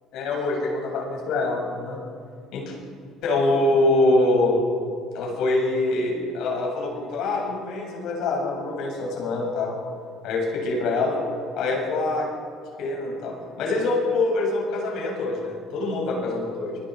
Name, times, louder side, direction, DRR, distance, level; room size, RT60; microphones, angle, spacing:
voice 1, 0.1-2.0 2.5-2.7 3.2-4.6 5.1-9.8 10.2-11.2 11.6-12.3 12.8-16.8, left 2 dB, 70° left, 0 dB, 7.4 m, -24 dB
30.0 x 21.0 x 5.0 m, 2.3 s
supercardioid pair, 75°, 0 cm